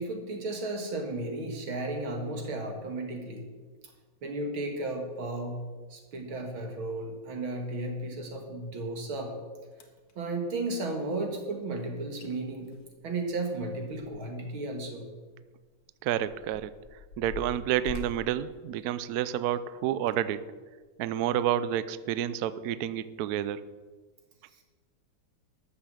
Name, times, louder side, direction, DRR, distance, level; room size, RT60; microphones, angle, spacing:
voice 1, 0.0-3.4 4.2-5.6 5.9-9.3 10.2-12.7 13.0-15.1, right 2 dB, 70° right, 3 dB, 2.7 m, -34 dB
sound 1, 9.3-9.4 9.7-10.1 11.9-12.0 12.2-12.3 12.6-14.4 14.8-14.9 15.6-19.4 20.0-20.2 20.8-20.9, left 5 dB, 65° left, 1.8 m, -45 dB
voice 2, 16.0-16.7 17.2-20.4 21.0-23.6, right 11 dB, 85° right, 15 dB, 0.8 m, -29 dB
12.5 x 7.2 x 7.7 m, 1.4 s
omnidirectional pair, 2.3 m